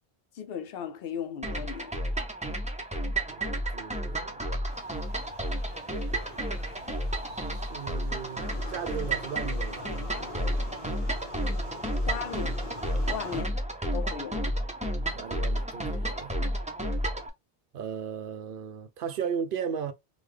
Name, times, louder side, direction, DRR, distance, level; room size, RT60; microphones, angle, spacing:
voice 1, 0.3-2.0 12.1-12.6 13.0-13.6 13.9-14.4, left 8 dB, 70° left, 0.7 m, -36 dB
sound 1, 1.4-17.3, right 1 dB, 10° right, 0.5 m, -31 dB
voice 2, 3.3-4.4 6.1-6.8 7.2-9.9 15.1-16.3 17.7-19.9, right 7 dB, 65° right, 0.7 m, -36 dB
sound 2, 4.7-13.4, left 2 dB, 25° left, 1.3 m, -45 dB
3.7 x 2.2 x 3.2 m
omnidirectional pair, 1.0 m